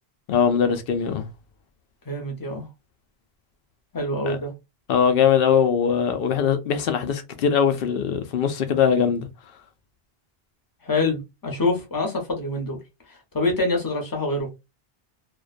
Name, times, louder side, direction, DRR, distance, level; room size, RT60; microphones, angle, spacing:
voice 1, 0.3-1.3 4.3-4.4 4.9-9.3, left 7 dB, 70° left, 0.7 m, -21 dB
voice 2, 2.1-2.7 3.9-4.5 10.8-12.8 13.1-14.5, left 2 dB, 25° left, 0.7 m, -25 dB
2.4 x 2.2 x 2.4 m
omnidirectional pair, 1.0 m